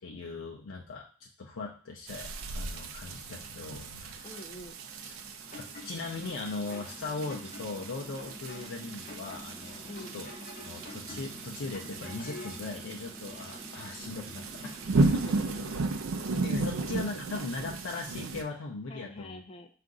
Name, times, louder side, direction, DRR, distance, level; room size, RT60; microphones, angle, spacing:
voice 1, 0.0-4.3 5.0-5.2 5.6-10.3 10.6-15.1 16.4-19.4, left 3 dB, 85° left, -1 dB, 0.5 m, -39 dB
sound 1, 2.1-18.4, right 3 dB, 85° right, 0.5 m, -35 dB
sound 2, 4.1-16.2, equal, 5° right, 0.9 m, -49 dB
voice 2, 4.2-4.8 9.9-10.1 15.0-15.6 16.6-16.7 18.9-19.7, left 1 dB, 30° left, 4 dB, 0.4 m, -46 dB
sound 3, 5.5-12.7, left 2 dB, 45° left, 0.8 m, -49 dB
4.6 x 2.5 x 3.8 m, 0.41 s
head